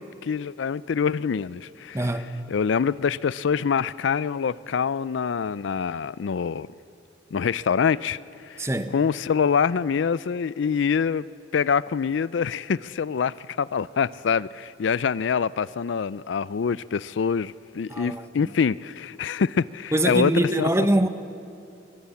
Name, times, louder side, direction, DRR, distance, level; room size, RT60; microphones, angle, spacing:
voice 1, 0.0-2.1 2.5-6.7 7.3-8.7 8.9-11.3 11.5-20.7, left 6 dB, 85° left, 0.4 m, -25 dB
voice 2, 1.9-2.3 8.6-8.9 17.9-18.2 19.9-21.1, right 1 dB, 15° right, 1.0 m, -23 dB
23.5 x 17.0 x 8.4 m
head